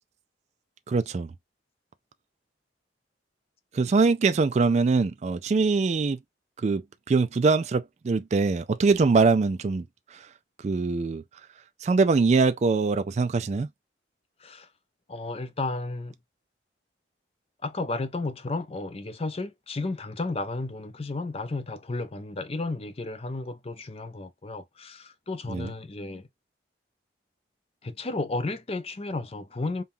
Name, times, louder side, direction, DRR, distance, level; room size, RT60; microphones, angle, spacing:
voice 1, 0.9-1.3 3.7-6.2 6.6-6.8 7.1-9.8 10.6-11.2 11.8-13.7 25.5-25.7, right 4 dB, 35° right, 0.3 m, -23 dB
voice 2, 15.1-16.1 17.6-26.3 27.8-29.8, left 2 dB, 35° left, 0.5 m, -33 dB
5.4 x 2.3 x 2.6 m
head